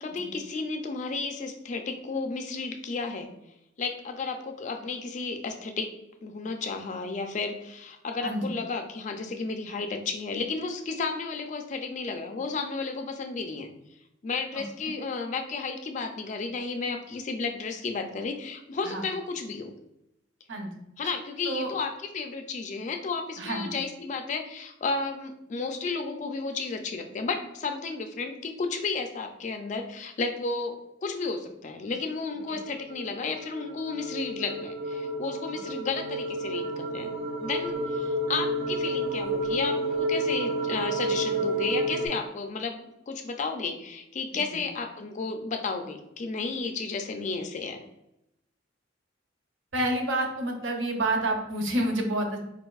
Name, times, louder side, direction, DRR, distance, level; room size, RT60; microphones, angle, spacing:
voice 1, 0.0-3.3 3.8-5.9 6.2-13.7 14.2-19.7 21.0-37.1 37.4-47.8, left 4 dB, 35° left, 5 dB, 0.3 m, -33 dB
voice 2, 8.2-8.5 14.5-14.9 18.8-19.0 20.5-20.7 21.5-21.7 23.4-23.7 49.7-52.4, right 1 dB, 70° right, 3 dB, 0.6 m, -29 dB
sound 1, 32.4-42.1, right 1 dB, 35° right, 0.4 m, -30 dB
4.0 x 2.5 x 2.3 m, 0.86 s
head